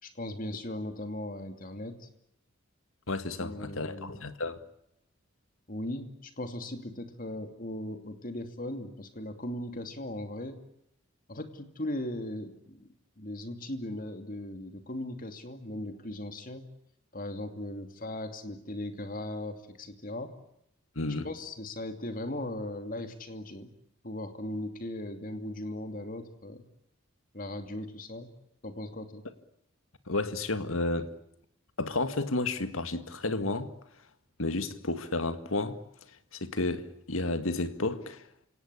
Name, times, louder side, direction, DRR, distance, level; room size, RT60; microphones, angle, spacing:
voice 1, 0.0-2.1 3.4-4.2 5.7-10.6 11.3-12.9 13.2-16.7 17.1-20.3 21.2-23.7 24.0-26.6 27.3-28.3 28.6-29.2, left 1 dB, 40° left, 2.7 m, -38 dB
voice 2, 3.1-4.6 21.0-21.3 30.1-31.1 31.8-33.7 34.4-35.8 36.3-38.2, left 2 dB, 80° left, 2.0 m, -31 dB
28.5 x 17.5 x 9.9 m
head